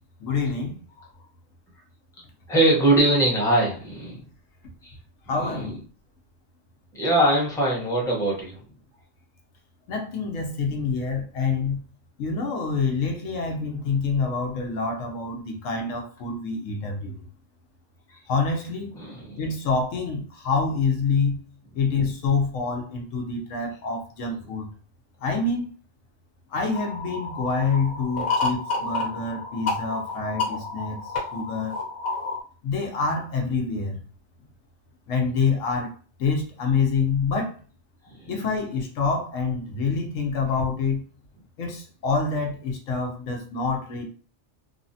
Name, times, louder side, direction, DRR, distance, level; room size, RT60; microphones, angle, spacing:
voice 1, 0.2-0.7 5.3-5.8 9.9-11.8 12.2-17.2 18.3-19.0 19.4-21.4 21.7-24.7 25.2-25.7 26.5-31.0 31.3-31.7 32.6-34.0 35.1-35.9 36.2-37.6 38.3-41.0 41.6-44.1, left 4 dB, 85° left, 2 dB, 1.1 m, -26 dB
voice 2, 2.5-4.3 4.8-4.9 5.4-5.7 7.0-8.6 18.1-18.2 19.0-19.4 38.1-38.3, right 1 dB, 5° left, -4 dB, 0.7 m, -22 dB
sound 1, 26.7-32.4, left 3 dB, 50° left, 1.2 m, -30 dB
3.3 x 2.0 x 2.6 m, 0.39 s
omnidirectional pair, 1.3 m